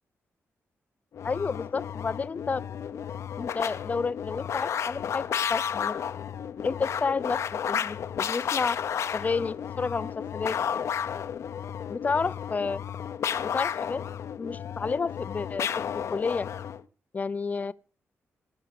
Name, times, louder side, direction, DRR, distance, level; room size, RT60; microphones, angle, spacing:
sound 1, 1.1-16.8, left 8 dB, 70° left, 0.9 m, -32 dB
voice 1, 1.2-2.6 3.4-6.0 6.6-7.4 7.7-8.8 9.1-10.6 11.9-12.8 13.4-14.0 14.4-16.5 17.1-17.7, left 4 dB, 30° left, 0.6 m, -30 dB
18.5 x 7.4 x 6.7 m
wide cardioid pair, 135°, 5 cm